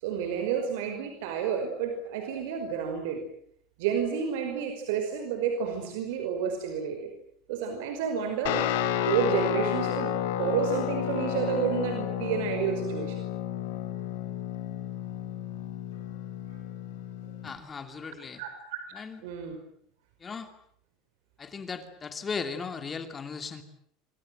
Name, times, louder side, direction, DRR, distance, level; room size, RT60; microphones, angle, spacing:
voice 1, 0.0-3.2 3.8-7.1 7.5-8.7 9.1-10.1 10.4-13.2 18.4-19.6, right 7 dB, 80° right, 5 dB, 5.3 m, -30 dB
Guitar, 8.5-17.6, left 11 dB, 90° left, 4.5 m, -31 dB
voice 2, 17.4-18.4 18.9-19.2 20.2-20.5 21.4-23.6, left 5 dB, 20° left, 8 dB, 2.7 m, -37 dB
27.0 x 26.0 x 7.8 m, 0.67 s
cardioid pair, 150°, 0 cm